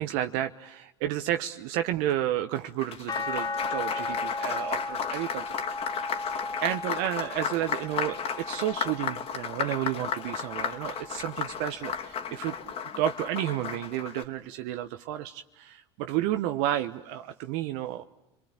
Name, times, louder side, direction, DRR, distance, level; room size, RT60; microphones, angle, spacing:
voice 1, 0.0-5.6 6.2-18.0, right 12 dB, 65° right, 8 dB, 1.1 m, -31 dB
Applause, 2.5-14.2, left 7 dB, 45° left, 2.9 m, -34 dB
sound 1, 3.1-9.4 9.9-11.3 12.7-12.8, left 3 dB, 25° left, 1.3 m, -37 dB
28.5 x 22.5 x 8.6 m, 0.93 s
hypercardioid pair, 85°, 14 cm